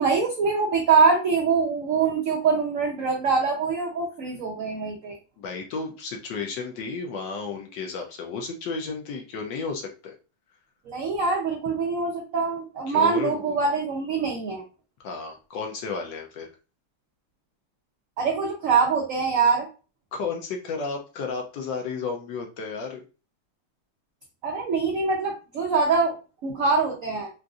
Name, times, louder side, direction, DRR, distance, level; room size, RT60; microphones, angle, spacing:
voice 1, 0.0-5.2 10.9-14.6 18.2-19.7 24.4-26.2 26.4-27.3, right 5 dB, 75° right, -1 dB, 0.7 m, -24 dB
voice 2, 5.4-10.1 12.9-13.6 15.0-16.5 20.1-23.0, left 5 dB, 75° left, 2 dB, 1.1 m, -33 dB
3.9 x 2.5 x 2.3 m, 0.34 s
omnidirectional pair, 2.2 m